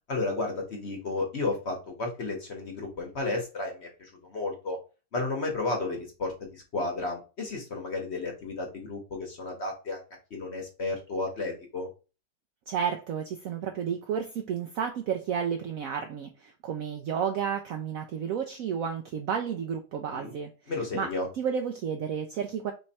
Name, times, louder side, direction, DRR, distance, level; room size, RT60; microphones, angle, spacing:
voice 1, 0.1-4.8 5.1-10.0 10.3-11.9 20.1-20.4 20.7-21.3, left 3 dB, 45° left, 1.0 m, -32 dB
voice 2, 12.7-20.5 20.9-21.1 21.3-22.7, right 7 dB, 75° right, 0.8 m, -31 dB
3.4 x 3.1 x 4.1 m
omnidirectional pair, 1.9 m